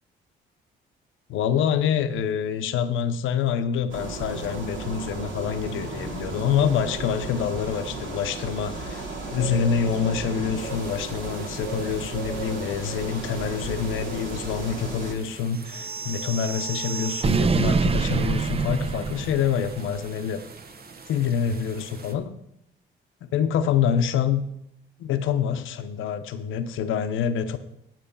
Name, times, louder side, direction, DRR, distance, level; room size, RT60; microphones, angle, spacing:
voice 1, 1.3-9.0 9.3-20.4 21.1-22.4 23.3-24.5 25.0-27.6, left 7 dB, 85° left, 9 dB, 0.8 m, -26 dB
sound 1, 3.9-15.1, right 3 dB, 85° right, 2.3 m, -34 dB
sound 2, 10.5-22.2, right 4 dB, 50° right, 1.1 m, -46 dB
sound 3, 15.7-20.0, right 4 dB, 30° right, 0.6 m, -26 dB
9.0 x 8.0 x 5.4 m, 0.78 s
cardioid pair, 90°, 20 cm